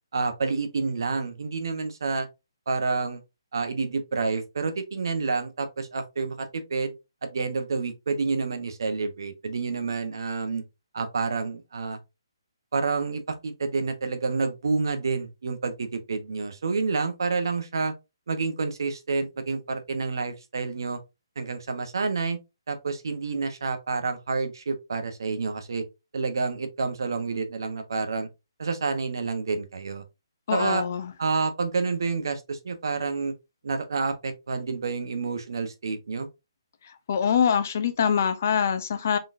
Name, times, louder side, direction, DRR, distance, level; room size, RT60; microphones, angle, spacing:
voice 1, 0.1-2.3 2.7-3.2 3.5-6.9 7.2-10.6 10.9-12.0 12.7-17.9 18.3-21.0 21.4-22.4 22.7-25.8 26.1-28.3 28.6-30.0 30.5-30.9 31.2-33.3 33.6-36.3, right 4 dB, 55° right, 0.9 m, -29 dB
voice 2, 30.5-31.1 37.1-39.2, left 7 dB, 30° left, 0.5 m, -24 dB
3.9 x 3.8 x 2.6 m
hypercardioid pair, 180°, 3 cm